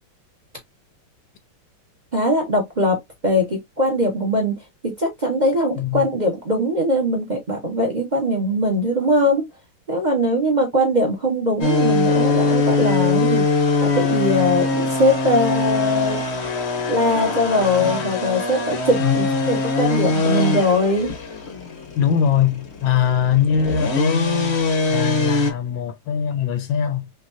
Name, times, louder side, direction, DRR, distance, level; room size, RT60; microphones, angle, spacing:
voice 1, 2.1-9.5 9.9-13.5 13.8-16.2 16.9-21.1, left 1 dB, 25° right, 1.0 m, -21 dB
voice 2, 5.8-6.1 19.0-19.5 22.0-24.6 24.9-27.1, left 8 dB, 75° left, 1.3 m, -22 dB
sound 1, 11.6-25.5, left 3 dB, 45° left, 0.9 m, -22 dB
5.5 x 2.9 x 2.6 m
omnidirectional pair, 2.4 m